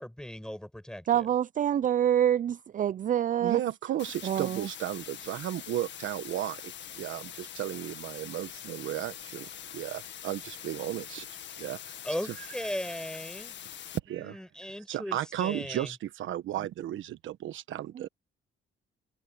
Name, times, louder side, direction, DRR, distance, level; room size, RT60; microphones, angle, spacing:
voice 1, 0.0-1.3 12.0-13.5 14.2-15.9, equal, 5° left, 7.6 m, -37 dB
voice 2, 1.1-3.6 4.2-4.7, right 10 dB, 40° right, 0.4 m, -26 dB
voice 3, 3.4-11.3 11.6-11.9 12.4-12.5 14.1-14.4 14.9-18.1, right 12 dB, 75° right, 1.2 m, -34 dB
sound 1, 4.0-14.0, left 10 dB, 65° left, 1.8 m, -44 dB
cardioid pair, 90°, 20 cm